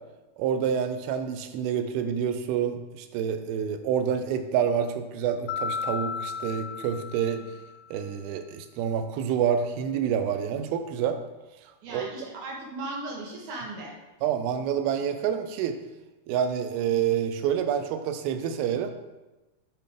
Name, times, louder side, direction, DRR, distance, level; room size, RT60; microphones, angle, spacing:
voice 1, 0.4-7.5 7.9-11.2 11.9-12.1 14.2-15.8 16.3-18.9, right 8 dB, 80° right, 8 dB, 2.4 m, -27 dB
Mallet percussion, 5.5-7.9, left 6 dB, 80° left, 2.1 m, -34 dB
voice 2, 11.8-13.9, right 2 dB, 60° right, -2 dB, 2.4 m, -37 dB
8.0 x 4.6 x 5.0 m, 1.1 s
omnidirectional pair, 4.6 m